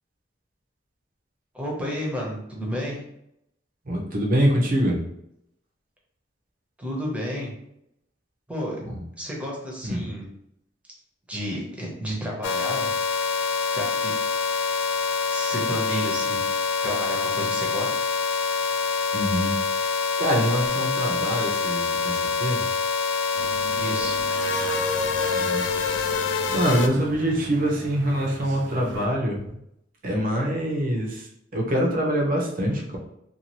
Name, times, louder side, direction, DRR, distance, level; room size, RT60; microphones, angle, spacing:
voice 1, 1.5-3.0 6.8-7.5 8.5-8.8 9.2-10.3 11.3-12.9 13.7-14.1 15.3-16.4 16.8-18.1 23.7-24.2, equal, 5° right, -3 dB, 0.7 m, -31 dB
voice 2, 3.9-5.0 8.8-9.0 9.8-10.0 19.1-22.7 25.3-25.7 26.5-29.5 30.0-33.0, equal, 50° right, 0 dB, 0.7 m, -25 dB
sound 1, 12.4-26.9, left 5 dB, 80° left, 0.4 m, -25 dB
sound 2, 23.3-29.1, right 2 dB, 80° right, 0.4 m, -39 dB
2.6 x 2.5 x 2.9 m, 0.77 s
head